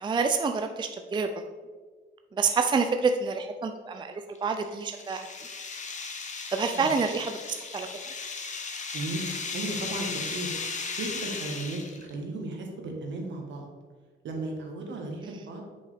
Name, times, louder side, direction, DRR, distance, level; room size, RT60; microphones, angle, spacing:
voice 1, 0.0-1.3 2.3-5.3 6.5-7.9 15.2-15.5, right 5 dB, 25° right, 6 dB, 0.4 m, -28 dB
sound 1, 4.3-12.1, left 4 dB, 35° left, 0.8 m, -36 dB
voice 2, 8.9-10.5 11.0-13.7 14.2-15.6, right 2 dB, 65° right, 2 dB, 1.5 m, -35 dB
6.3 x 5.5 x 3.5 m, 1.4 s
cardioid pair, 90°, 20 cm